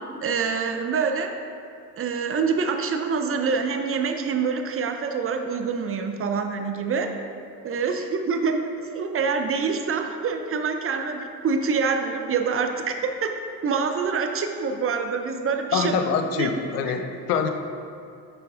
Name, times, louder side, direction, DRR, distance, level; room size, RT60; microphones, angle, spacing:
voice 1, 0.2-1.3 2.0-7.1 7.6-13.0 13.2-13.3 13.6-16.0 16.4-16.6, right 5 dB, 30° right, 5 dB, 0.5 m, -26 dB
voice 2, 15.7-17.5, left 6 dB, 75° left, 6 dB, 0.6 m, -25 dB
9.9 x 3.4 x 3.7 m, 2.4 s
hypercardioid pair, 60°, 48 cm